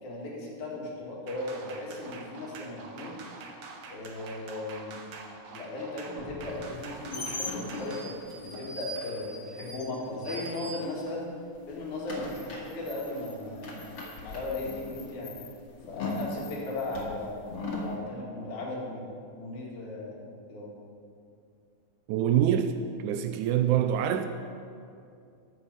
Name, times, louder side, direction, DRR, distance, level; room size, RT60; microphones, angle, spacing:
voice 1, 0.0-3.1 3.9-5.0 5.5-11.3 11.7-14.0 14.2-15.3 15.9-19.1 19.3-20.7, left 2 dB, 75° left, -4 dB, 3.5 m, -37 dB
sound 1, 1.3-8.1, right 4 dB, 60° right, 1.6 m, -45 dB
Slam, 3.1-3.2 3.7-4.1 6.2-8.1 8.3-8.4, equal, 25° left, 1.5 m, -48 dB
sound 2, 6.7-11.3 11.5-17.9, left 2 dB, 50° left, 2.6 m, -40 dB
voice 2, 22.1-22.7 23.0-24.3, right 10 dB, 85° right, 8 dB, 2.0 m, -25 dB
14.0 x 8.2 x 5.4 m, 2.4 s
omnidirectional pair, 3.5 m